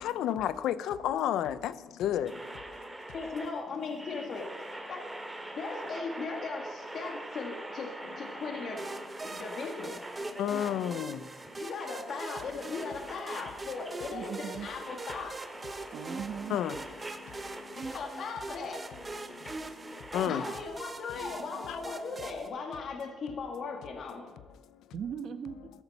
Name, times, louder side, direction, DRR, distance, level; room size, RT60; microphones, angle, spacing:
voice 1, 0.0-1.7 2.0-2.3 10.4-11.2 16.5-16.7 20.1-20.4, left 10 dB, 85° left, 15 dB, 0.6 m, -30 dB
sound 1, 2.3-20.7, right 1 dB, 10° right, 2.2 m, -44 dB
voice 2, 3.1-5.1 5.5-8.9 9.2-10.0 11.6-15.4 17.7-18.9 20.1-24.3, left 4 dB, 60° left, 2 dB, 2.0 m, -38 dB
sound 2, 8.8-22.5, right 3 dB, 25° right, 1.0 m, -43 dB
voice 3, 14.1-14.7 15.9-16.6 20.3-20.6 24.9-25.7, right 7 dB, 65° right, 10 dB, 1.2 m, -39 dB
14.0 x 12.5 x 4.3 m, 1.3 s
cardioid pair, 90°, 0 cm